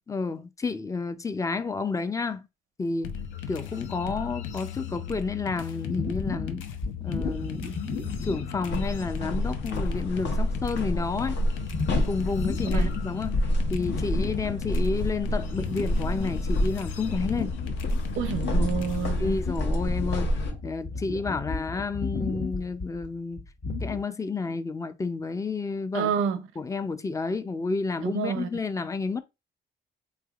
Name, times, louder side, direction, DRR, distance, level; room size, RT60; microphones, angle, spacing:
voice 1, 0.1-2.5 2.8-3.1 3.5-6.6 7.0-7.7 8.1-11.4 12.1-13.3 13.7-17.6 18.5-18.8 19.2-20.3 20.6-23.4 23.8-26.1 26.6-29.2, left 4 dB, 15° left, 0.4 m, -30 dB
sound 1, 3.0-19.3, left 8 dB, 85° left, 0.5 m, -37 dB
sound 2, 5.9-8.9 9.4-9.5 9.9-10.3 11.7-13.1 13.4-15.1 15.4-24.0, left 4 dB, 45° left, 1.1 m, -34 dB
sound 3, 8.7-20.5, left 1 dB, 65° left, 0.8 m, -29 dB
voice 2, 18.2-19.4 25.9-26.4 28.0-28.5, right 7 dB, 90° right, 0.5 m, -28 dB
3.8 x 3.2 x 2.3 m
cardioid pair, 90°, 20 cm